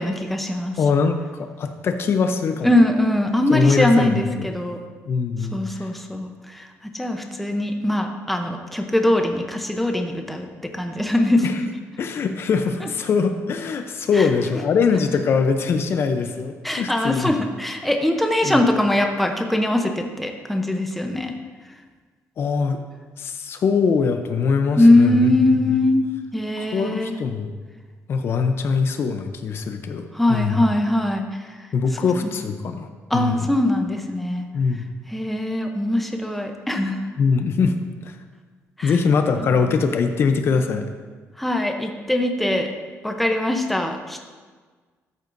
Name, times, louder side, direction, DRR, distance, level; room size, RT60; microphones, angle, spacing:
voice 1, 0.0-0.8 2.6-4.8 5.5-11.5 12.8-12.9 14.1-14.3 16.6-21.3 24.8-26.0 26.3-27.1 30.1-31.5 32.0-32.3 33.1-34.5 35.1-37.0 38.8-38.9 41.4-42.7 43.0-44.2, left 1 dB, ahead, 3 dB, 0.7 m, -21 dB
voice 2, 0.8-2.7 3.5-4.5 5.1-5.9 11.4-11.5 12.0-17.3 18.4-18.6 22.4-22.8 23.2-25.4 25.7-25.8 26.6-27.5 28.1-30.6 31.7-32.9 33.1-33.5 34.5-34.8 37.2-37.8 38.0-38.2 38.8-40.8, left 5 dB, 50° left, 7 dB, 0.6 m, -22 dB
13.5 x 8.0 x 2.6 m, 1.5 s
cardioid pair, 140°, 5 cm